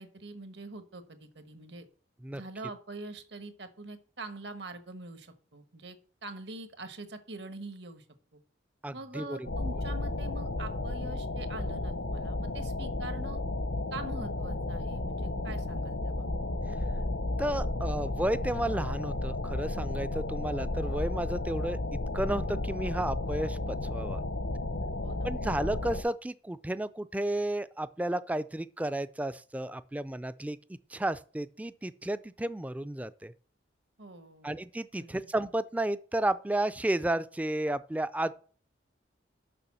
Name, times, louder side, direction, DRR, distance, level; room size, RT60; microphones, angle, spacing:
voice 1, 0.0-1.9 2.3-6.0 6.2-8.0 8.3-8.4 8.9-13.4 13.9-16.3 16.7-16.8 25.0-25.3 34.0-34.5 35.0-35.1, right 2 dB, 65° right, 1.2 m, -44 dB
voice 2, 8.8-9.4 17.4-21.8 22.1-24.2 25.2-30.6 30.9-33.3 34.4-38.3, right 1 dB, 10° right, 0.3 m, -32 dB
sound 1, 9.5-26.0, left 2 dB, 85° left, 1.0 m, -33 dB
6.8 x 6.1 x 7.3 m
head